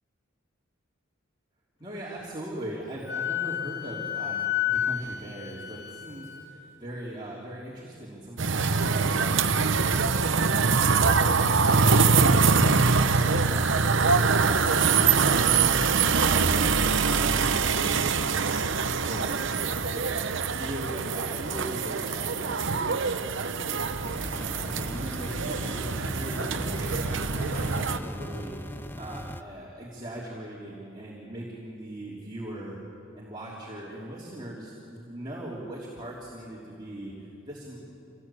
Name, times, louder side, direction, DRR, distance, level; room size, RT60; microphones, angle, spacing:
voice 1, 1.8-10.8 11.1-20.2 20.5-23.9 24.3-32.8 33.1-37.8, right 1 dB, 20° right, -5 dB, 3.2 m, -40 dB
Wind instrument woodwind instrument, 3.0-6.5, left 11 dB, 55° left, 2.2 m, -31 dB
sound 1, 8.4-28.0, right 5 dB, 65° right, 0.9 m, -24 dB
sound 2, 24.0-29.4, left 1 dB, 10° left, 0.7 m, -38 dB
26.0 x 18.5 x 8.4 m, 3.0 s
head